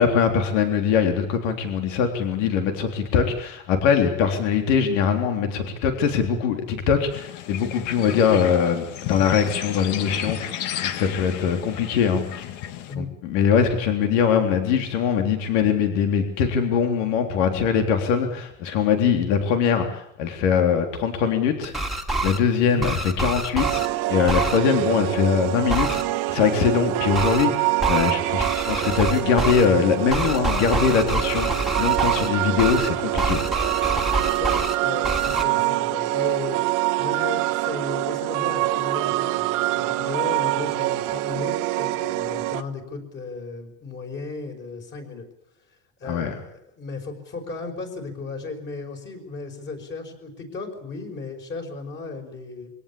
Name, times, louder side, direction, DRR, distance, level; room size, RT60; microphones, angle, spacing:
voice 1, 0.0-10.5 10.8-12.4 12.9-21.7 22.2-23.8 24.1-26.0 26.3-31.5 31.8-33.4 46.1-46.3, left 7 dB, 85° left, 5 dB, 3.7 m, -22 dB
sound 1, 7.1-12.9, left 11 dB, 60° left, 1.7 m, -33 dB
sound 2, 21.6-22.4 22.8-23.9 24.3-24.6 25.7-26.0 27.1-27.5 27.8-28.1 28.4-29.7 30.1-32.3 32.6-32.9 33.2-34.8 35.0-35.4, right 2 dB, ahead, 2.2 m, -26 dB
sound 3, 23.6-42.6, right 18 dB, 55° right, 1.2 m, -25 dB
voice 2, 34.1-36.6 37.0-45.3 46.0-52.7, left 4 dB, 30° left, 3 dB, 5.3 m, -35 dB
24.5 x 17.5 x 8.7 m, 0.73 s
cardioid pair, 145°, 36 cm